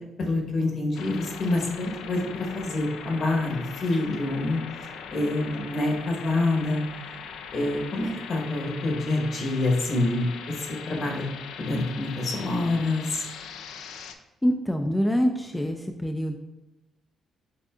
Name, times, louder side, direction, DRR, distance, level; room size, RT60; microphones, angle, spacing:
voice 1, 0.2-6.8 7.1-7.2 7.5-10.3 10.9-11.3 11.6-13.2, left 2 dB, 55° left, 0 dB, 1.1 m, -27 dB
sound 1, 0.9-14.1, left 6 dB, 85° left, 0.4 m, -40 dB
voice 2, 14.4-16.4, equal, 10° left, 4 dB, 0.3 m, -25 dB
7.3 x 2.7 x 2.4 m, 1.0 s
cardioid pair, 90°, 0 cm